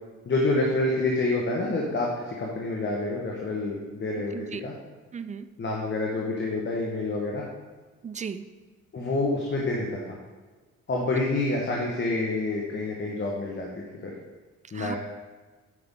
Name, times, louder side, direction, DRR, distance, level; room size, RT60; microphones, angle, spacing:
voice 1, 0.2-4.3 4.6-4.7 5.6-7.4 8.9-10.2 10.9-14.1 14.7-15.0, left 2 dB, 40° left, -2 dB, 1.4 m, -28 dB
voice 2, 5.1-5.5 8.0-8.4 14.7-15.0, right 6 dB, 25° right, 11 dB, 0.5 m, -35 dB
9.7 x 5.7 x 3.8 m, 1.3 s
cardioid pair, 90°, 30 cm